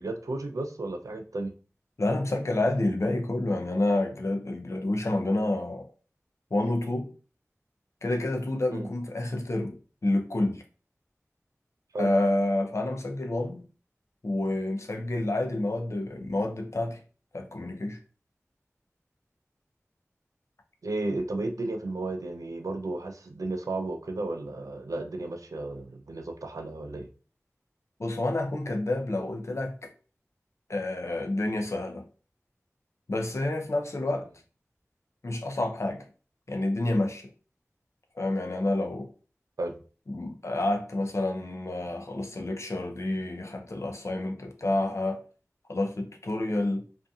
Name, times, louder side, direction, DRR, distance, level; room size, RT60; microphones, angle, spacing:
voice 1, 0.0-1.5 8.7-8.9 11.9-12.1 20.8-27.1 39.6-39.8, right 2 dB, 85° right, 0.4 m, -33 dB
voice 2, 2.0-5.9 6.5-7.1 8.0-10.6 12.0-13.7 14.2-17.0 17.3-18.0 28.0-29.9 30.7-32.1 33.1-34.3 35.2-36.1 36.5-37.3 38.1-39.1 40.1-45.2 45.7-46.8, left 2 dB, 60° left, 0.5 m, -29 dB
2.6 x 2.5 x 2.3 m
wide cardioid pair, 50°, 5 cm